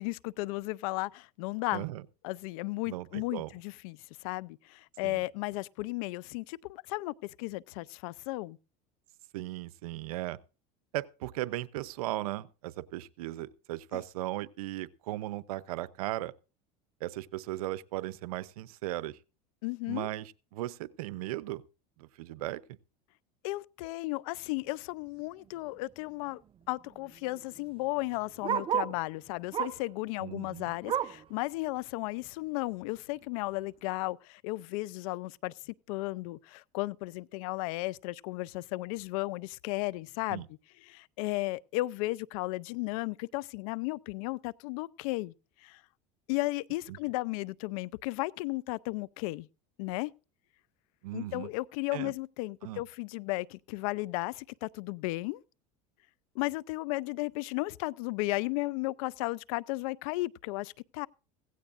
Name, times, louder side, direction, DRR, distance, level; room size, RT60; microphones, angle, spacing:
voice 1, 0.0-1.9 2.2-8.6 13.9-14.0 19.6-20.1 23.4-26.4 26.7-40.4 40.9-45.3 45.6-45.8 46.3-49.5 49.8-50.1 51.1-55.4 56.4-61.1, left 21 dB, 75° left, 0.6 m, -34 dB
voice 2, 1.7-2.0 2.9-3.5 5.0-5.2 9.3-10.4 10.9-16.3 17.0-19.2 19.9-21.6 22.0-22.8 30.2-30.7 40.3-40.5 46.9-47.0 51.0-51.5 51.9-52.1 52.6-52.8, right 16 dB, 85° right, 0.7 m, -37 dB
Bark, 25.3-25.6 25.9-26.0 26.2-29.0 29.5-29.9 30.3-31.3 31.8-31.9 32.3-32.4 33.0-33.1, right 9 dB, 30° right, 0.6 m, -34 dB
16.5 x 16.0 x 2.5 m
supercardioid pair, 110°, 18 cm